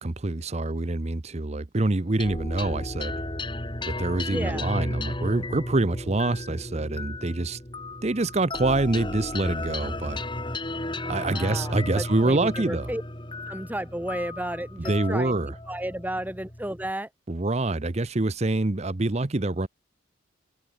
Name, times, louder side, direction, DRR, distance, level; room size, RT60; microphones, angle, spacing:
voice 1, 0.0-3.2 3.9-7.6 8.0-10.2 11.1-12.9 14.8-15.5 17.3-19.7, right 2 dB, 35° right, 0.8 m, -26 dB
sound 1, 2.2-16.9, left 2 dB, 25° left, 4.3 m, -34 dB
voice 2, 4.3-4.7 11.3-13.0 13.5-15.4 15.7-17.1, right 1 dB, 10° right, 1.8 m, -33 dB
head